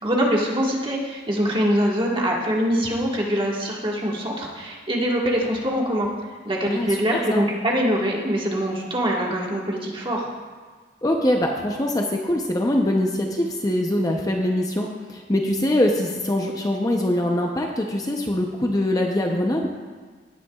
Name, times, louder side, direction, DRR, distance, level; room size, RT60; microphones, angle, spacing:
voice 1, 0.0-6.1 6.4-10.3, equal, 30° right, -2 dB, 1.6 m, -23 dB
voice 2, 6.7-7.4 11.0-19.7, left 1 dB, 20° left, 1 dB, 0.7 m, -23 dB
17.0 x 9.1 x 2.4 m, 1.5 s
head